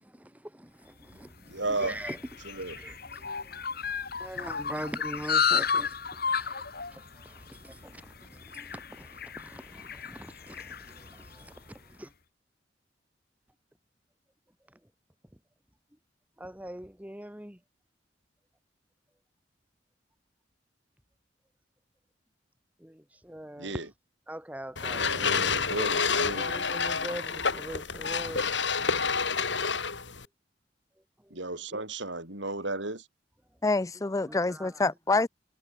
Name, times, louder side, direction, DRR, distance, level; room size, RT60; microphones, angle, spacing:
voice 1, 0.1-1.5 1.8-2.2 2.8-3.5 4.2-6.0 6.3-6.7 6.9-12.1 16.4-17.6 22.8-23.7 24.3-25.6 26.3-28.5 34.3-34.7, right 1 dB, 10° right, 2.2 m, -42 dB
sound 1, 1.1-11.7, left 6 dB, 55° left, 5.2 m, -33 dB
voice 2, 1.5-2.0 2.4-2.8 23.5-23.9 25.0-26.5 31.3-33.1, right 2 dB, 80° right, 7.2 m, -34 dB
sound 2, 24.8-30.3, left 5 dB, 75° left, 4.3 m, -29 dB
voice 3, 33.6-35.3, left 3 dB, 20° left, 0.4 m, -26 dB
head